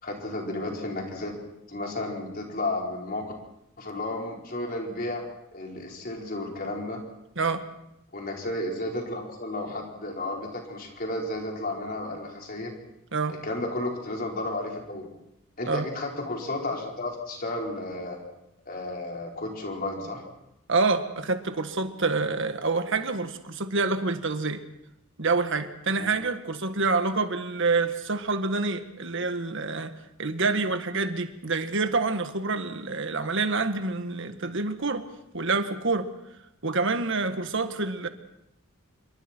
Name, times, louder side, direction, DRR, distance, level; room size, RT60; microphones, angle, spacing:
voice 1, 0.0-1.3 1.7-3.3 3.8-5.2 5.5-7.0 8.1-12.7 13.3-15.1 15.6-18.2 18.7-20.2 26.0-26.1, left 2 dB, 45° left, 0 dB, 4.8 m, -33 dB
voice 2, 20.7-24.6 25.2-29.9 30.2-35.1 35.3-36.1 36.6-38.1, right 3 dB, 60° right, 8 dB, 1.7 m, -27 dB
27.0 x 23.5 x 4.6 m, 0.84 s
head